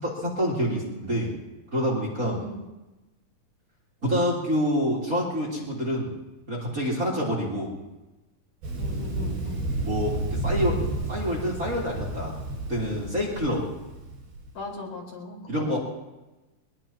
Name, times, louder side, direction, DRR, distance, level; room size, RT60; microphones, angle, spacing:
voice 1, 0.0-1.3 1.7-2.4 4.0-6.1 6.5-7.7 9.8-12.3 12.7-13.6 15.5-15.8, equal, 20° right, -3 dB, 3.7 m, -27 dB
voice 2, 2.2-2.6 8.8-9.6 14.5-15.8, left 2 dB, 65° left, -3 dB, 6.6 m, -39 dB
Thunder, 8.6-14.5, right 2 dB, 75° right, 9.1 m, -31 dB
22.5 x 21.0 x 3.0 m, 1.1 s
omnidirectional pair, 4.3 m